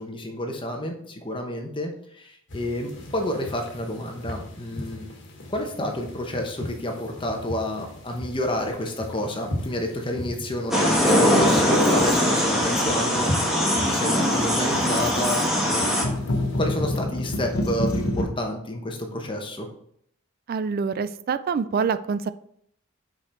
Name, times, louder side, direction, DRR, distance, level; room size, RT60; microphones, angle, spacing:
voice 1, 0.0-5.0 5.5-13.3 13.9-16.2 16.6-19.7, left 1 dB, 25° left, 3 dB, 1.0 m, -30 dB
sound 1, 2.5-17.0, left 1 dB, 55° left, 1.5 m, -38 dB
sound 2, 10.7-12.3 12.6-13.1 13.6-13.9 14.3-18.2, left 1 dB, 85° left, 1.0 m, -29 dB
sound 3, 10.7-16.0, equal, ahead, 1.3 m, -21 dB
voice 2, 20.5-22.3, right 5 dB, 45° right, 13 dB, 0.3 m, -26 dB
5.4 x 5.1 x 4.4 m, 0.69 s
head